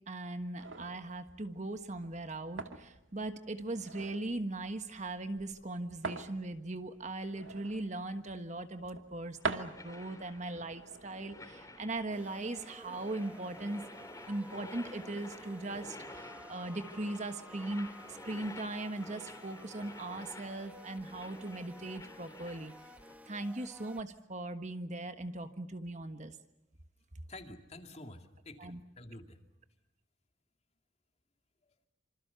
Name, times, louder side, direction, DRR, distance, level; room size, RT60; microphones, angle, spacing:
voice 1, 0.1-13.8 14.3-22.7 23.3-26.3 28.6-28.8, right 2 dB, 35° right, 8 dB, 1.4 m, -39 dB
sound 1, 0.6-12.4, right 4 dB, 75° right, 2.1 m, -45 dB
sound 2, 9.4-23.1, left 2 dB, 15° left, 3.6 m, -51 dB
sound 3, 12.1-24.0, equal, 5° right, 1.3 m, -54 dB
voice 2, 27.3-29.4 31.6-31.7, left 2 dB, 35° left, 5 dB, 2.4 m, -49 dB
26.5 x 26.5 x 7.0 m, 0.89 s
head